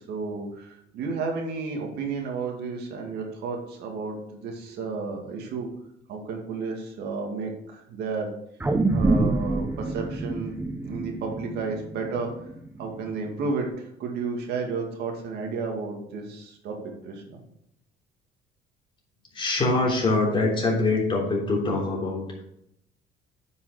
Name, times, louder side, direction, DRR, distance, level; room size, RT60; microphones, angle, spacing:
voice 1, 0.1-5.7 6.1-8.3 8.9-10.5 10.8-12.3 12.8-16.8 17.0-17.4, right 4 dB, 75° right, 1 dB, 2.2 m, -32 dB
sound 1, 8.6-13.1 13.5-13.6, right 2 dB, 10° right, 0.8 m, -27 dB
voice 2, 19.3-22.4, left 2 dB, 30° left, -2 dB, 3.3 m, -24 dB
9.5 x 5.6 x 4.9 m, 0.75 s
cardioid pair, 110°, 17 cm